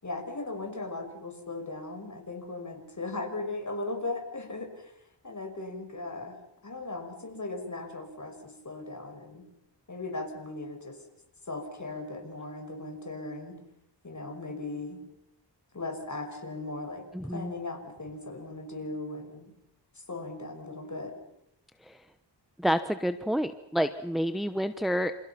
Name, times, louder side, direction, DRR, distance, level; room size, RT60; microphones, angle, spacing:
voice 1, 0.0-4.9 5.2-6.4 6.6-9.4 9.9-11.0 11.5-13.6 14.0-15.0 15.7-19.5 19.9-21.2, left 2 dB, 40° left, 4 dB, 5.8 m, -38 dB
voice 2, 17.1-17.5 21.8-22.0 22.6-25.2, equal, ahead, 10 dB, 1.0 m, -29 dB
28.5 x 28.5 x 5.9 m, 0.77 s
wide cardioid pair, 100°, 45 cm